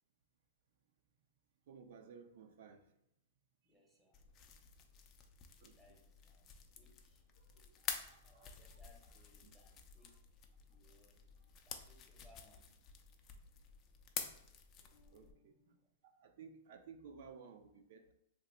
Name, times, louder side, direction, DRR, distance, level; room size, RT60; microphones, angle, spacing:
voice 1, 1.7-2.8 5.6-5.7 7.6-8.5 9.4-9.5 10.0-10.1 15.1-15.5 16.0-18.1, right 6 dB, 65° right, 6 dB, 0.3 m, -56 dB
voice 2, 3.6-4.2 5.7-6.5 6.8-7.3 8.2-10.2 10.6-11.3 11.6-12.7 14.8-15.9, left 2 dB, ahead, -1 dB, 0.7 m, -68 dB
sound 1, 4.1-15.3, left 7 dB, 30° left, 0.4 m, -50 dB
2.9 x 2.1 x 4.1 m, 0.81 s
hypercardioid pair, 135°, 0 cm